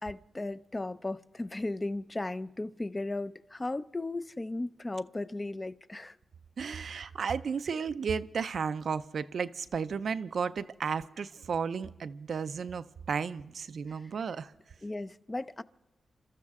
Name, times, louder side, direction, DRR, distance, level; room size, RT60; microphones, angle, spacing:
voice 1, 0.0-6.2 6.6-7.1 13.9-14.0 14.8-15.6, left 2 dB, 25° left, 0.5 m, -36 dB
voice 2, 6.6-14.5, right 6 dB, 70° right, 0.4 m, -33 dB
28.5 x 13.0 x 3.6 m
cardioid pair, 65°, 0 cm